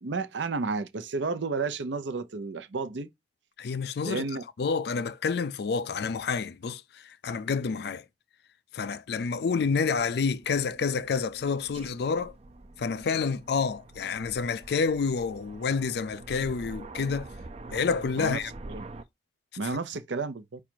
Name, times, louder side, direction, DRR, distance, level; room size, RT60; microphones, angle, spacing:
voice 1, 0.0-3.1 4.0-4.4 18.2-18.4 18.7-18.8 19.6-20.6, right 4 dB, 90° right, 0.6 m, -32 dB
voice 2, 3.6-4.2 4.6-8.1 8.7-12.3 12.8-17.3 17.7-18.5, left 5 dB, 65° left, 0.4 m, -29 dB
Aircraft, 9.6-19.0, right 2 dB, 35° right, 0.4 m, -46 dB
5.0 x 2.3 x 4.4 m
head